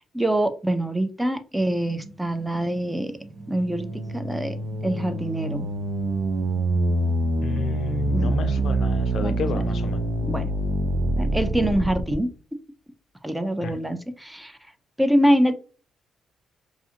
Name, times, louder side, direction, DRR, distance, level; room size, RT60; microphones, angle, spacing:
voice 1, 0.1-3.1 3.5-3.9 4.1-4.6 4.8-5.7 8.1-8.4 9.2-9.6 10.2-10.5 11.2-12.3 13.2-14.6 15.0-15.5, right 1 dB, 5° right, 0.3 m, -24 dB
sound 1, 1.5-9.9, right 1 dB, 30° right, 0.7 m, -45 dB
sound 2, 3.4-12.1, right 2 dB, 85° right, 0.5 m, -26 dB
voice 2, 7.4-10.1 13.6-13.8, left 6 dB, 65° left, 0.4 m, -31 dB
2.4 x 2.4 x 2.7 m
cardioid pair, 90°, 0 cm